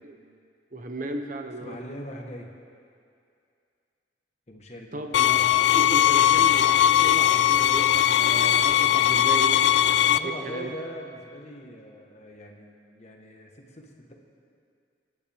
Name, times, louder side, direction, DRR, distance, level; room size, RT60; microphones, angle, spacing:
voice 1, 0.7-1.7 4.9-9.6 10.2-10.7, right 2 dB, 45° right, 5 dB, 0.9 m, -35 dB
voice 2, 1.6-2.5 4.5-5.4 10.1-12.7 13.0-14.1, left 1 dB, 40° left, 1 dB, 1.4 m, -41 dB
sound 1, 5.1-10.2, left 11 dB, 80° left, 0.4 m, -20 dB
24.5 x 10.0 x 3.5 m, 2.4 s
head